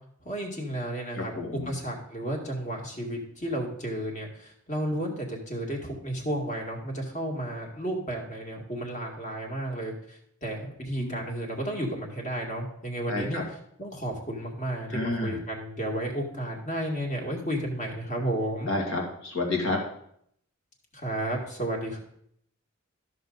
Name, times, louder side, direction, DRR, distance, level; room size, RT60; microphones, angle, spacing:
voice 1, 0.2-1.3 1.7-13.4 13.8-18.7 20.9-22.0, right 1 dB, 35° left, 0 dB, 2.0 m, -32 dB
voice 2, 1.1-1.7 11.0-11.2 13.1-13.4 14.9-15.4 18.7-19.8, left 2 dB, 65° left, 0 dB, 2.2 m, -30 dB
13.5 x 6.3 x 4.0 m, 0.70 s
head